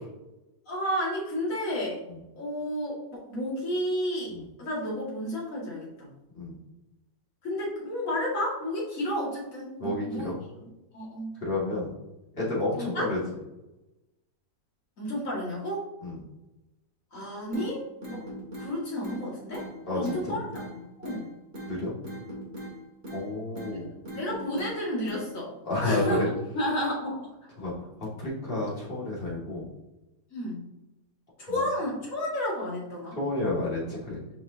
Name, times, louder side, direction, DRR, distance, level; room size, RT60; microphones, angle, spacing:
voice 1, 0.7-2.0 2.4-6.1 7.4-10.3 10.9-11.3 12.8-13.1 15.0-15.9 17.1-17.8 18.1-18.3 18.6-19.7 19.9-21.3 23.5-23.6 24.1-25.5 25.8-26.2 26.5-27.3 30.3-30.7 31.4-33.2, equal, 45° left, -6 dB, 2.5 m, -31 dB
voice 2, 9.8-10.4 11.4-11.9 12.4-13.2 16.0-16.2 19.9-20.4 21.7-21.9 23.1-23.9 25.6-26.3 27.6-27.7 28.2-29.7 31.5-31.6 33.2-34.2, left 2 dB, 30° left, -7 dB, 2.3 m, -30 dB
sound 1, 17.5-17.7 18.0-18.7 19.0-19.2 19.5-19.7 20.0-20.7 21.0-21.2 21.5-21.7 22.0-22.7 23.0-23.2 23.5-23.7 24.0-24.7 25.0-25.2, equal, 35° right, 2.4 m, -39 dB
6.4 x 5.3 x 2.8 m, 0.98 s
omnidirectional pair, 2.0 m